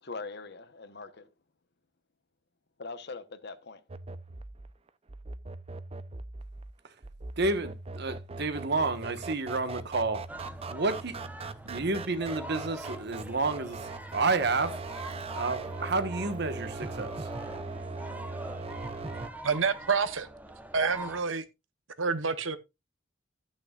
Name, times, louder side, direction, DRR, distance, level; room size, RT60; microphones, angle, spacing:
voice 1, 0.0-1.3 2.8-3.8, left 3 dB, 60° left, 1.0 m, -41 dB
sound 1, 3.9-19.3, right 3 dB, 30° right, 0.6 m, -40 dB
voice 2, 7.4-10.2 10.7-11.3 11.6-14.8 15.3-17.3, right 3 dB, 60° right, 1.3 m, -30 dB
sound 2, 10.3-21.2, right 1 dB, 10° right, 0.9 m, -44 dB
voice 3, 19.4-20.3 20.7-21.4 22.0-22.6, right 5 dB, 80° right, 1.0 m, -28 dB
13.0 x 9.0 x 2.4 m
head